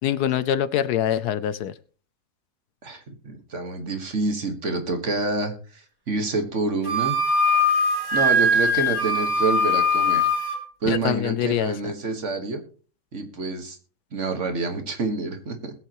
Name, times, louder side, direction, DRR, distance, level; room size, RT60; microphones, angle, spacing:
voice 1, 0.0-1.7 10.9-11.7, left 10 dB, 70° left, 15 dB, 1.1 m, -24 dB
voice 2, 2.8-7.1 8.1-10.3 10.8-12.6 13.1-13.8 14.1-15.7, right 3 dB, 45° right, 6 dB, 1.9 m, -27 dB
Wind instrument woodwind instrument, 6.8-10.6, left 1 dB, 15° right, 2.5 m, -21 dB
21.0 x 8.1 x 3.0 m, 0.40 s
omnidirectional pair, 1.8 m